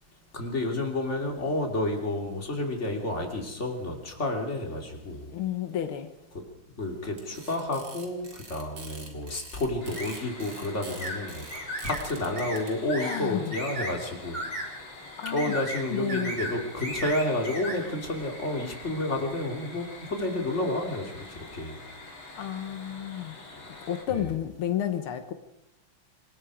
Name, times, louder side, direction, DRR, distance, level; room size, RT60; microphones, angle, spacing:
voice 1, 0.3-5.3 6.8-14.7 15.3-21.8 23.5-23.6 24.1-24.3, left 1 dB, 30° left, 2 dB, 3.3 m, -30 dB
voice 2, 5.3-6.1 13.0-13.5 15.2-15.5 15.9-16.4 22.3-23.4 23.9-25.3, left 10 dB, 80° left, 8 dB, 2.0 m, -31 dB
sound 1, 7.0-12.7, right 4 dB, 70° right, 3.9 m, -46 dB
sound 2, 9.8-24.0, left 2 dB, 65° left, 4.5 m, -46 dB
sound 3, 10.0-10.2 11.0-11.2 11.5-12.0 12.4-12.6 12.9-13.2 13.5-13.9 14.3-14.7 15.2-15.8 16.1-16.5 16.8-17.8, equal, 20° right, 4.4 m, -34 dB
27.0 x 19.5 x 5.0 m, 0.89 s
omnidirectional pair, 2.3 m